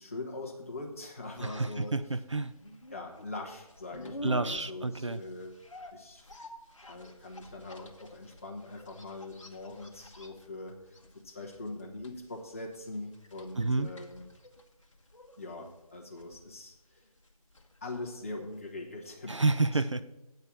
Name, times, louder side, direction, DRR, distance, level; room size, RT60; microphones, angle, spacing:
voice 1, 0.0-1.9 2.9-5.6 5.9-6.3 6.8-14.2 15.4-17.0 17.8-19.8, left 2 dB, 20° left, -1 dB, 1.1 m, -42 dB
sound 1, 0.8-18.8 19.1-19.2, equal, 55° left, 1.2 m, -50 dB
voice 2, 1.4-2.5 4.2-5.2 13.6-13.9 19.3-20.0, right 3 dB, 55° right, 12 dB, 0.4 m, -29 dB
8.9 x 5.6 x 6.9 m, 1.0 s
figure-of-eight pair, 165°, 19 cm